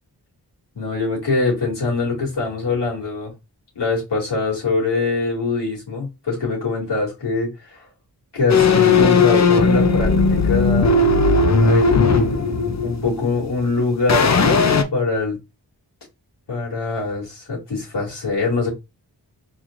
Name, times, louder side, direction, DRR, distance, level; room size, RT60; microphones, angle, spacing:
voice 1, 0.7-3.3 3.8-7.9 8.3-11.3 11.6-12.4 12.8-15.4 16.5-18.7, left 3 dB, 75° left, 2.6 m, -23 dB
sound 1, 8.5-13.7 14.1-14.8, left 4 dB, 40° left, 0.7 m, -16 dB
4.2 x 3.1 x 2.6 m
cardioid pair, 40°, 42 cm